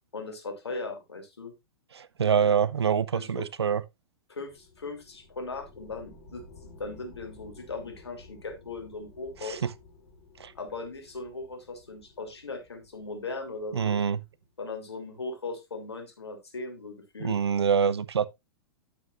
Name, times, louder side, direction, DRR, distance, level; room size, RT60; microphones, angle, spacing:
voice 1, 0.1-1.5 3.1-3.5 4.3-9.6 10.5-14.0 14.6-17.3, left 3 dB, 85° left, 3.0 m, -38 dB
voice 2, 1.9-3.8 9.4-9.7 10.4-10.5 13.7-14.2 17.2-18.3, right 7 dB, 80° right, 0.7 m, -25 dB
sound 1, 4.5-14.5, left 3 dB, 45° left, 4.5 m, -53 dB
10.5 x 8.8 x 2.5 m
hypercardioid pair, 110°, 13 cm